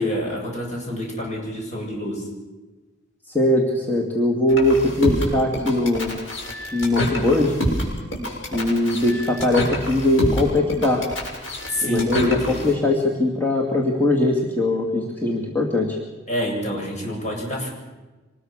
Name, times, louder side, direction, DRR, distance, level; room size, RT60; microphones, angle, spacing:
voice 1, 0.0-2.3 11.7-12.7 16.3-17.7, left 1 dB, 40° left, -1 dB, 8.0 m, -27 dB
voice 2, 3.3-6.2 6.7-7.5 8.5-11.0 11.8-16.0, left 2 dB, 10° left, -2 dB, 2.5 m, -21 dB
sound 1, 4.5-12.7, equal, 90° left, 6.6 m, -27 dB
25.5 x 20.5 x 6.5 m, 1.2 s
head